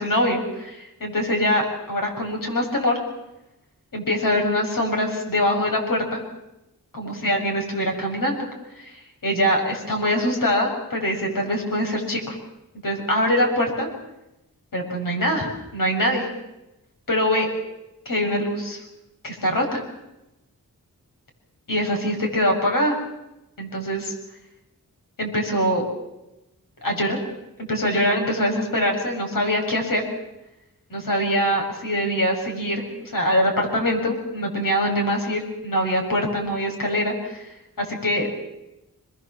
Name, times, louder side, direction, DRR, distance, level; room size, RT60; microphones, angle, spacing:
voice 1, 0.0-3.0 3.9-6.2 6.9-8.5 8.8-8.9 9.2-12.4 12.8-13.9 14.7-16.3 17.1-17.5 18.1-18.8 19.2-19.8 21.7-23.0 23.6-24.1 25.2-25.8 26.8-27.2 27.7-30.0 30.9-38.3, equal, 65° left, 1 dB, 7.1 m, -23 dB
27.0 x 21.5 x 7.5 m, 0.93 s
wide cardioid pair, 105°, 35 cm